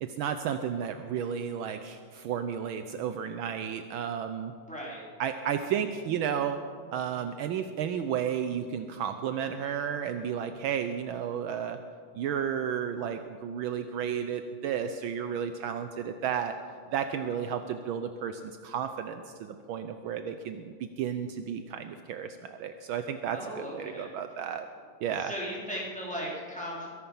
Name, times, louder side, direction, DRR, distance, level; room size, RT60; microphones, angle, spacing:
voice 1, 0.0-4.5 5.2-6.6 6.9-11.8 12.1-16.6 16.9-24.7 25.0-25.3, right 8 dB, 75° right, 9 dB, 1.4 m, -32 dB
voice 2, 4.7-5.1 23.3-24.1 25.2-26.9, equal, 5° left, -6 dB, 4.1 m, -37 dB
22.5 x 11.5 x 5.5 m, 2.1 s
omnidirectional pair, 2.4 m